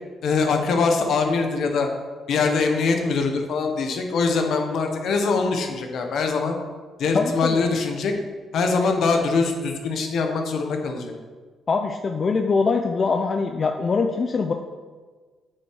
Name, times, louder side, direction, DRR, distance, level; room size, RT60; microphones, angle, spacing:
voice 1, 0.2-1.9 2.3-6.6 7.0-8.1 8.5-11.1, left 4 dB, 70° left, 4 dB, 1.3 m, -23 dB
voice 2, 7.1-7.6 11.7-14.5, left 4 dB, 40° left, 4 dB, 0.6 m, -23 dB
8.4 x 6.5 x 4.7 m, 1.5 s
cardioid pair, 90°, 0 cm